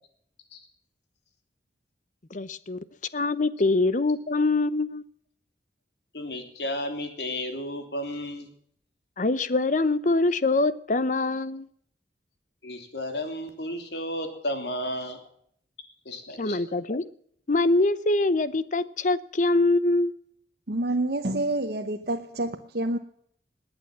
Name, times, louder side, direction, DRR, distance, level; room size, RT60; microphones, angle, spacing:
voice 1, 2.3-2.8 3.1-5.0 9.2-11.7 16.4-17.0 17.5-20.1, left 2 dB, 45° left, 0.7 m, -24 dB
voice 2, 6.1-8.5 12.6-15.2 16.0-16.6, left 1 dB, 75° left, 3.1 m, -33 dB
voice 3, 20.7-23.0, right 1 dB, 60° right, 1.0 m, -28 dB
19.5 x 9.1 x 7.4 m
head